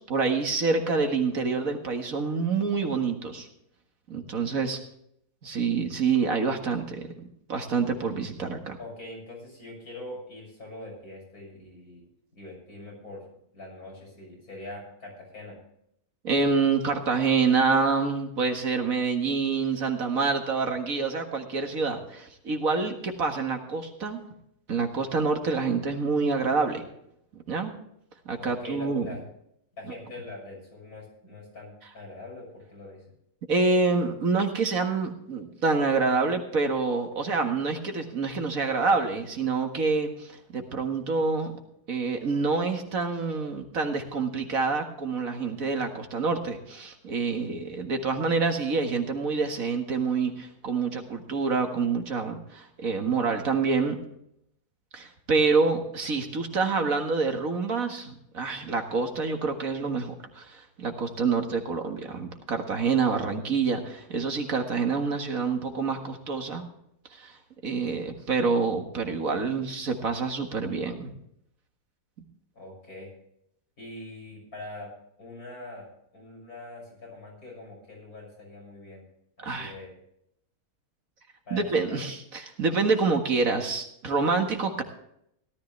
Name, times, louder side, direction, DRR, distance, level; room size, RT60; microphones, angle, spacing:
voice 1, 0.0-3.5 4.1-4.8 5.4-7.1 7.5-8.8 16.2-24.2 24.7-26.9 27.5-27.7 28.3-29.1 33.5-41.5 41.9-54.0 54.9-66.7 67.1-67.4 67.6-71.1 79.4-79.7 81.5-84.8, right 4 dB, 65° right, 4 dB, 2.1 m, -27 dB
voice 2, 8.8-12.1 12.3-13.2 13.5-15.6 28.4-29.2 29.8-33.1 72.6-73.1 73.8-74.9 75.2-79.1 79.4-80.0 81.5-82.0, left 2 dB, 80° left, -1 dB, 7.0 m, -43 dB
17.5 x 13.5 x 3.3 m, 0.74 s
omnidirectional pair, 1.5 m